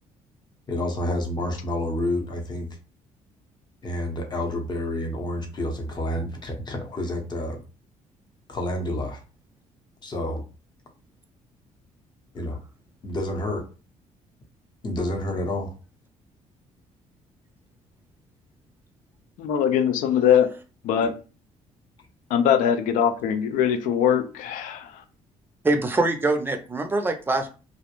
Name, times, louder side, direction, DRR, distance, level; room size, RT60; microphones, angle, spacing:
voice 1, 0.7-2.7 3.8-7.6 8.5-9.2 10.0-10.4 12.3-12.6 13.0-13.7 14.8-15.7 21.0-21.1, left 1 dB, 35° left, 0.8 m, -29 dB
voice 2, 19.4-20.5 20.8-21.1 22.3-24.9, left 8 dB, 85° left, 0.4 m, -21 dB
voice 3, 25.6-27.5, right 2 dB, 15° right, 0.5 m, -23 dB
2.3 x 2.0 x 2.9 m
cardioid pair, 95°, 13 cm